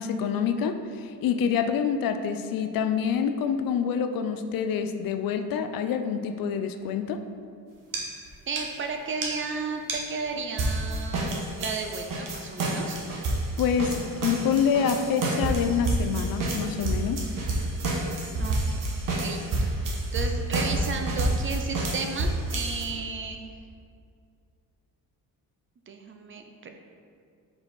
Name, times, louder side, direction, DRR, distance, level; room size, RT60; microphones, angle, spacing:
voice 1, 0.0-7.2 13.6-17.2, left 7 dB, 70° left, 8 dB, 0.5 m, -27 dB
sound 1, 7.9-8.0 8.3-8.4 8.6-8.7 9.2-9.3 9.9-10.0 10.6-22.8, right 2 dB, 60° right, 1.2 m, -29 dB
voice 2, 8.5-13.0 18.4-18.8 19.2-19.4 19.7-23.5 25.9-26.7, right 4 dB, 35° right, 4 dB, 0.5 m, -34 dB
4.9 x 4.8 x 4.1 m, 2.3 s
cardioid pair, 115°, 36 cm